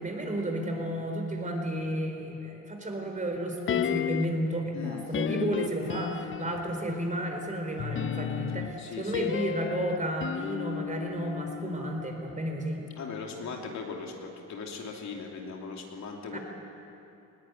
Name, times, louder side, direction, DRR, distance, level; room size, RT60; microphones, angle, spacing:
voice 1, 0.0-12.8 16.3-16.4, right 1 dB, 25° right, 2 dB, 4.2 m, -32 dB
sound 1, 3.7-4.5 5.1-6.8 7.8-12.0 12.3-12.4, left 9 dB, 40° left, 0.6 m, -33 dB
voice 2, 4.7-5.0 8.8-9.3 13.0-16.4, left 5 dB, 65° left, 1 dB, 3.1 m, -39 dB
20.0 x 17.5 x 9.2 m, 2.8 s
cardioid pair, 90°, 30 cm